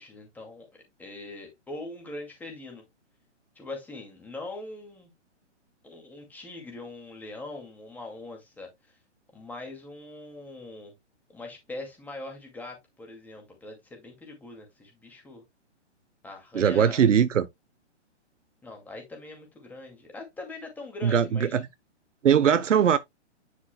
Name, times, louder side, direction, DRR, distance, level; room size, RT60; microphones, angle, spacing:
voice 1, 0.0-2.8 3.6-5.1 5.8-9.0 9.3-10.9 11.3-15.4 16.2-17.1 18.6-21.6, left 2 dB, 5° left, 2.2 m, -42 dB
voice 2, 16.5-17.5 21.0-21.6 22.2-23.0, right 8 dB, 85° right, 1.0 m, -20 dB
9.7 x 6.2 x 2.2 m
hypercardioid pair, 160°, 36 cm